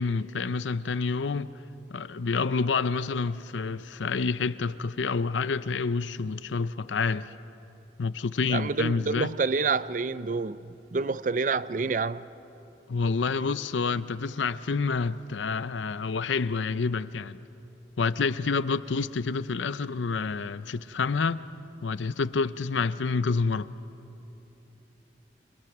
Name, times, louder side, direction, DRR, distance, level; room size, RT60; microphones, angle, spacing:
voice 1, 0.0-1.5 1.9-7.3 8.0-9.3 12.9-17.4 18.0-21.4 21.8-23.7, left 4 dB, 80° left, 0.6 m, -28 dB
voice 2, 8.5-12.2, right 4 dB, 45° right, 0.5 m, -28 dB
30.0 x 24.5 x 6.0 m
head